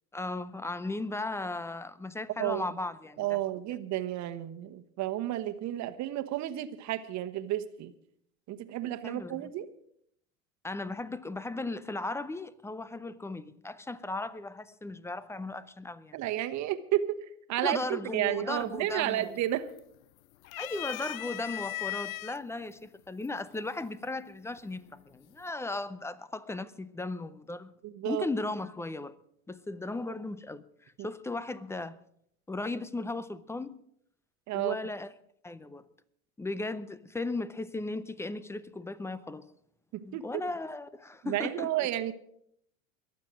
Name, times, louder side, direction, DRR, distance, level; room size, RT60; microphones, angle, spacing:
voice 1, 0.1-3.4 9.0-9.5 10.6-16.2 17.6-19.4 20.6-27.7 28.1-29.2 29.5-32.0 32.5-33.8 34.5-35.1 35.4-35.9 36.4-39.5 40.0-41.7, left 2 dB, 5° left, 0.4 m, -36 dB
voice 2, 3.2-7.9 8.5-9.7 16.1-17.1 17.5-19.7 27.8-28.3 31.0-31.1 34.5-34.8 39.9-40.3 41.2-42.1, right 13 dB, 40° right, 1.3 m, -32 dB
sound 1, 18.6-19.0 19.3-20.0 20.4-22.4 23.2-23.3 24.6-25.0, left 16 dB, 70° left, 0.6 m, -38 dB
22.0 x 7.6 x 6.2 m
hypercardioid pair, 95°, 43 cm